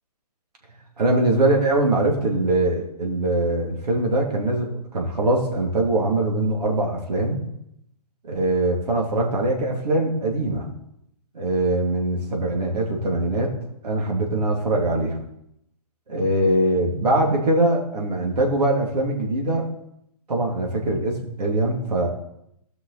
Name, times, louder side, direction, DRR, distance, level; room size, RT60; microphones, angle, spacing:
voice 1, 1.0-7.4 8.2-10.7 11.3-13.5 13.8-15.2 16.1-19.7 20.3-22.1, right 1 dB, 75° right, 0 dB, 2.9 m, -22 dB
16.5 x 6.0 x 4.2 m, 0.78 s
hypercardioid pair, 140°, 20 cm